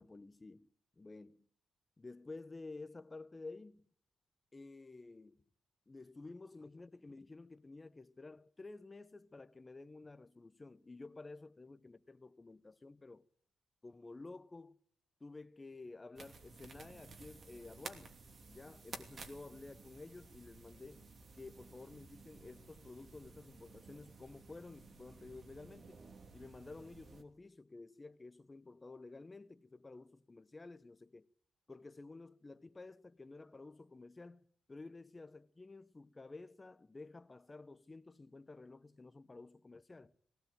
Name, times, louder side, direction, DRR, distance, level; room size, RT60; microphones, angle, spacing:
voice 1, 0.0-1.5 2.0-3.9 4.5-5.5 5.9-13.2 13.8-14.8 15.2-18.2 18.5-21.0 21.3-26.0 26.3-31.3 31.7-40.1, left 3 dB, 25° left, 1.0 m, -52 dB
sound 1, 16.2-27.2, right 4 dB, 50° right, 2.8 m, -55 dB
19.0 x 18.0 x 9.2 m
cardioid pair, 95°, 0 cm